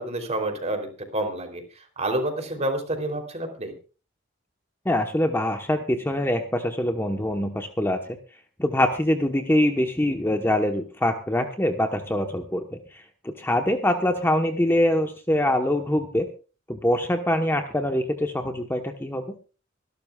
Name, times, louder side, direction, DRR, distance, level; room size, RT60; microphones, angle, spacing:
voice 1, 0.0-1.6 2.0-3.7, right 1 dB, 35° right, 4 dB, 3.3 m, -28 dB
voice 2, 4.8-8.2 8.6-16.3 16.7-19.3, left 1 dB, 10° left, 5 dB, 1.0 m, -24 dB
25.0 x 12.0 x 2.4 m, 0.35 s
head